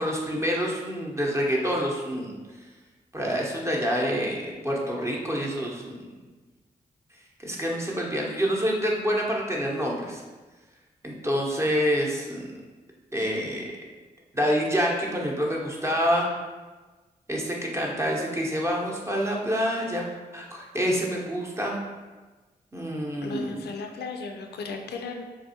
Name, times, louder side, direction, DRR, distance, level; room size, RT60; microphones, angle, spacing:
voice 1, 0.0-2.4 3.1-6.2 7.4-10.2 11.0-12.5 13.1-13.7 14.3-16.3 17.3-20.1 20.3-21.8 22.7-23.6, equal, 15° right, -2 dB, 0.8 m, -27 dB
voice 2, 23.2-25.2, left 4 dB, 75° left, 4 dB, 0.4 m, -35 dB
3.4 x 2.3 x 2.8 m, 1.3 s
supercardioid pair, 45°, 17 cm